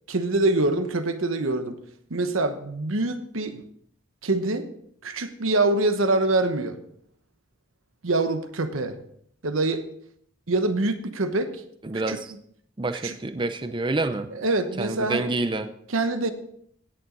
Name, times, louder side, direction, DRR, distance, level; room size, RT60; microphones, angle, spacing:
voice 1, 0.1-1.8 2.1-3.6 4.2-4.7 5.0-6.8 8.0-9.0 9.4-9.8 10.5-11.5 11.9-12.2 12.9-13.2 14.3-15.3 15.9-16.3, right 2 dB, 85° right, 9 dB, 1.1 m, -25 dB
voice 2, 11.8-12.3 12.8-14.3 14.8-15.7, right 2 dB, 25° right, 9 dB, 0.5 m, -27 dB
17.0 x 7.2 x 3.9 m, 0.68 s
head